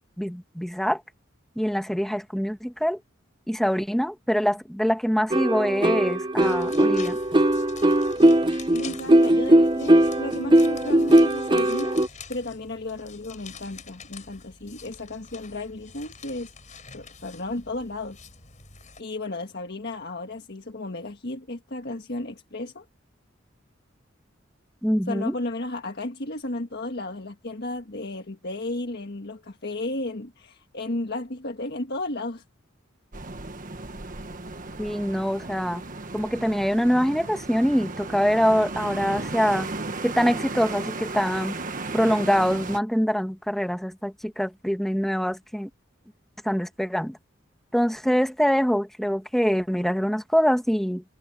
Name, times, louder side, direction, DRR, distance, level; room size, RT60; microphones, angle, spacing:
voice 1, 0.2-1.0 1.6-3.0 3.5-7.2 24.8-25.3 34.8-35.8 36.1-39.7 40.0-41.6 41.9-45.7 46.4-47.2 47.7-51.0, equal, ahead, 1.4 m, -24 dB
sound 1, 5.3-12.1, right 1 dB, 25° right, 0.8 m, -19 dB
sound 2, 6.4-19.0, left 6 dB, 40° left, 5.1 m, -46 dB
voice 2, 8.7-16.5 16.9-18.2 19.0-22.8 25.1-32.4, left 2 dB, 55° left, 1.6 m, -34 dB
sound 3, 33.1-42.8, right 3 dB, 45° right, 1.6 m, -35 dB
head